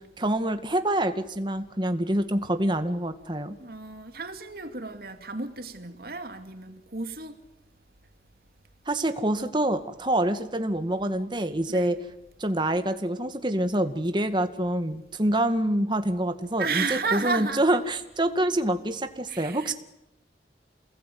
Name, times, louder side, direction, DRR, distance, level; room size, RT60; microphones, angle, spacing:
voice 1, 0.0-3.5 8.9-12.0 12.4-19.7, right 1 dB, 25° right, 2.0 m, -26 dB
voice 2, 3.6-7.4 11.7-12.0 16.6-17.6 19.3-19.7, right 4 dB, 55° right, 2.7 m, -32 dB
28.5 x 21.0 x 9.5 m
head